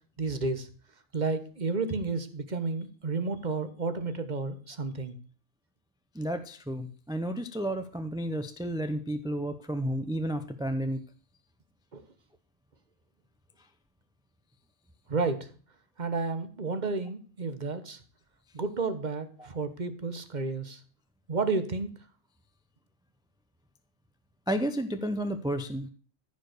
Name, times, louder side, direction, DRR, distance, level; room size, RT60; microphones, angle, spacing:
voice 1, 0.2-0.7 1.1-5.1 11.9-12.0 15.1-15.4 16.0-18.0 18.5-20.8 21.3-21.9, right 4 dB, 40° right, 10 dB, 1.2 m, -31 dB
voice 2, 6.2-11.0 24.5-25.9, equal, 5° right, 9 dB, 0.6 m, -32 dB
14.0 x 4.9 x 6.6 m, 0.40 s
omnidirectional pair, 1.2 m